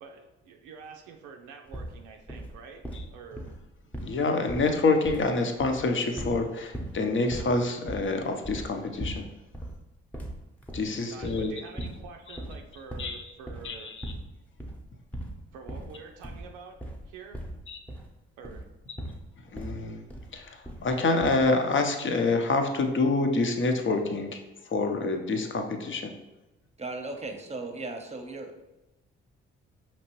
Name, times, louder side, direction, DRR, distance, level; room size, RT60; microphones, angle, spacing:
voice 1, 0.0-2.8 3.1-3.5 11.1-13.9 15.5-16.8 17.1-17.4 18.4-18.7, right 5 dB, 80° right, 3 dB, 0.5 m, -47 dB
sound 1, 1.7-2.0 2.3-2.5 2.8-4.2 4.5-5.3 5.6-6.5 6.7-7.0 7.3-7.6 7.9-9.3 9.5-9.8 10.1-11.5 11.8-12.1 12.3-13.2 13.5-13.7 14.0-14.3 14.6-14.8 15.1-15.4 15.7-15.9 16.2-16.5 16.8-17.0 17.3-18.1 18.4-18.7 19.0-19.3 19.6-19.8 20.1-20.4 20.6-20.9 21.2-21.5, right 1 dB, 5° left, 0.9 m, -38 dB
voice 2, 4.0-9.3 10.7-11.5 12.3-12.4 13.0-13.3 13.6-14.1 17.7-17.8 19.5-20.0 20.3-26.1, left 3 dB, 40° left, 5 dB, 0.7 m, -27 dB
voice 3, 26.8-28.5, right 2 dB, 20° right, 4 dB, 0.8 m, -36 dB
5.1 x 3.0 x 3.0 m, 0.99 s
hypercardioid pair, 50°, 31 cm